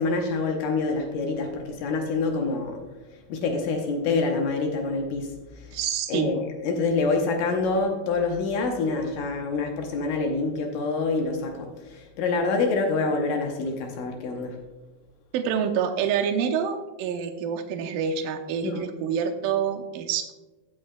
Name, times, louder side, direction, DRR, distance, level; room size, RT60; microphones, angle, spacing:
voice 1, 0.0-2.8 3.3-5.8 6.1-14.6 18.6-18.8, left 3 dB, 70° left, 2 dB, 2.3 m, -26 dB
voice 2, 5.7-6.3 15.3-20.3, right 7 dB, 75° right, 4 dB, 2.3 m, -27 dB
17.5 x 6.4 x 2.2 m, 1.2 s
omnidirectional pair, 4.4 m